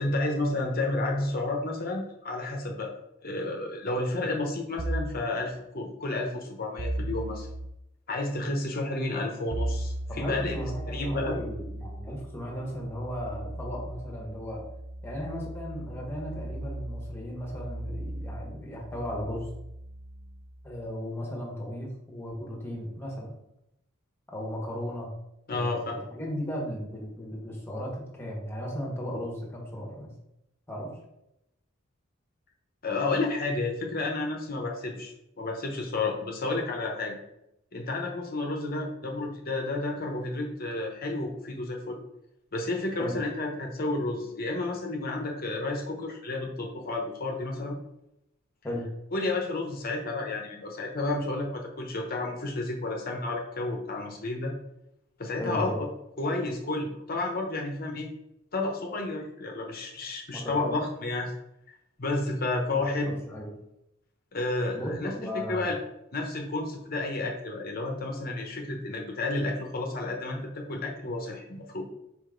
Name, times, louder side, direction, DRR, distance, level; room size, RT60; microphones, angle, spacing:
voice 1, 0.0-2.9 3.2-7.5 8.1-10.5 10.9-11.4 25.5-26.0 32.8-37.2 37.7-42.0 42.5-47.8 49.1-54.5 55.2-55.9 56.2-58.1 58.5-61.3 61.7-63.1 64.3-65.8 66.1-71.8, left 2 dB, 45° left, 1 dB, 0.9 m, -31 dB
sound 1, 4.8-5.2 6.8-7.7 9.5-20.9, right 1 dB, 30° right, 0.6 m, -37 dB
voice 2, 10.1-14.6 15.0-19.5 20.6-23.3 24.3-25.1 25.5-30.1 30.7-31.0 43.0-43.1 48.6-48.9 55.4-55.9 60.3-60.7 62.7-63.5 64.7-65.7, equal, 10° left, -2 dB, 1.4 m, -36 dB
5.2 x 5.1 x 3.9 m, 0.85 s
head